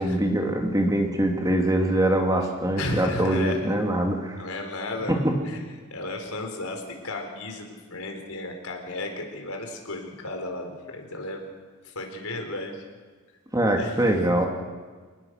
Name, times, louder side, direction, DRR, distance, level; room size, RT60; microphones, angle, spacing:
voice 1, 0.0-4.4 5.1-5.3 13.5-14.4, right 1 dB, 15° right, 2 dB, 2.6 m, -23 dB
voice 2, 2.8-3.6 4.4-5.6 5.9-11.4 11.8-12.8 13.8-14.0, left 2 dB, 80° left, 3 dB, 4.5 m, -34 dB
28.0 x 19.5 x 6.6 m, 1.5 s
head